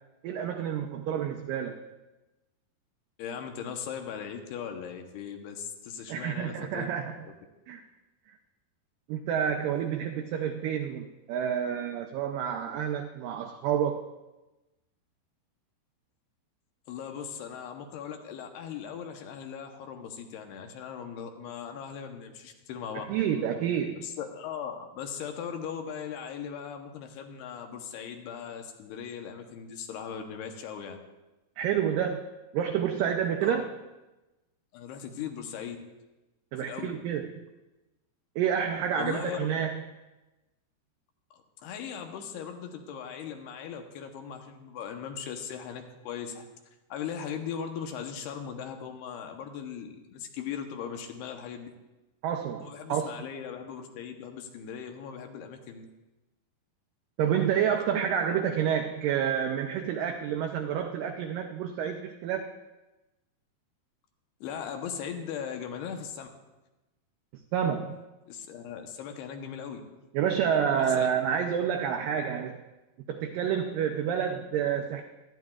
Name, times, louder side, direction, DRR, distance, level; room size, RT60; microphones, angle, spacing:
voice 1, 0.2-1.8 6.1-7.3 7.7-7.8 9.1-14.0 23.1-24.0 31.6-32.3 32.5-33.7 36.5-37.5 38.4-39.8 52.2-53.1 57.2-62.5 67.5-68.0 70.1-72.6 73.1-75.0, right 8 dB, 85° right, 4 dB, 1.9 m, -29 dB
voice 2, 3.2-6.9 16.9-23.0 23.9-31.0 33.4-33.6 34.7-35.8 36.6-36.9 38.9-39.5 41.3-46.5 46.9-51.7 52.6-55.9 58.3-58.4 64.4-66.3 68.3-69.8 70.5-71.1, left 7 dB, 80° left, 5 dB, 2.9 m, -39 dB
18.5 x 13.0 x 2.4 m, 1.1 s
omnidirectional pair, 4.6 m